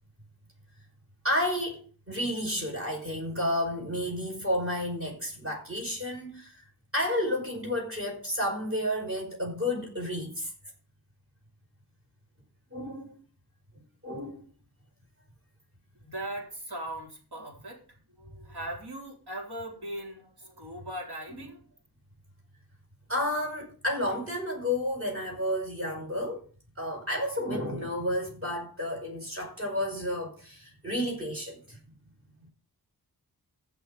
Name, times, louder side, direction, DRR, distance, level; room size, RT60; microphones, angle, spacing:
voice 1, 1.2-6.6 6.9-10.5 12.7-13.2 14.0-14.5 21.3-21.5 23.1-26.5 26.8-31.8, left 1 dB, 35° right, 5.3 m, -31 dB
voice 2, 15.9-21.6, right 1 dB, 80° right, 4.2 m, -39 dB
15.5 x 6.2 x 5.0 m
wide cardioid pair, 105°, 39 cm